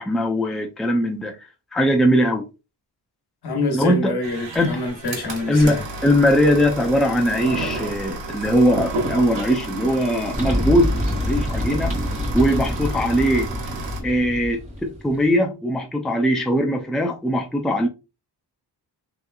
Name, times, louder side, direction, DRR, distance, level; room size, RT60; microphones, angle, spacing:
voice 1, 0.0-1.4 1.7-2.4 3.7-4.2 4.5-4.8 5.5-10.9 11.3-11.9 12.3-13.5 14.0-17.9, equal, ahead, 0.5 m, -20 dB
voice 2, 3.4-5.8, left 2 dB, 60° left, 1.1 m, -26 dB
sound 1, 4.2-14.0, right 2 dB, 90° right, 1.0 m, -32 dB
sound 2, 10.3-15.2, left 1 dB, 20° right, 1.8 m, -26 dB
3.2 x 3.0 x 2.3 m
wide cardioid pair, 95°, 43 cm